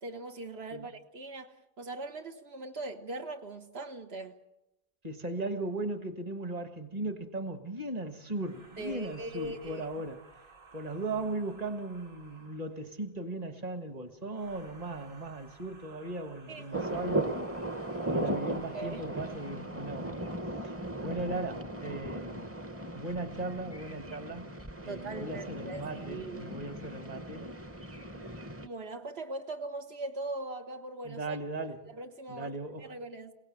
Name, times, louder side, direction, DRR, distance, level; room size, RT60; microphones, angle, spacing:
voice 1, 0.0-4.4 8.8-9.9 16.5-16.9 18.7-19.0 24.9-26.5 28.6-31.4 31.8-32.5 32.8-33.3, right 2 dB, 80° right, 1.5 m, -40 dB
voice 2, 5.0-10.2 10.7-17.4 18.1-20.3 20.6-22.6 22.9-24.5 24.8-27.5 31.0-31.9 32.3-32.9, right 2 dB, 40° right, 1.6 m, -37 dB
sound 1, 8.3-12.9 14.2-19.7, right 4 dB, 60° right, 5.4 m, -57 dB
sound 2, 16.7-28.7, right 1 dB, 15° right, 0.7 m, -37 dB
28.5 x 17.5 x 7.6 m
omnidirectional pair, 1.0 m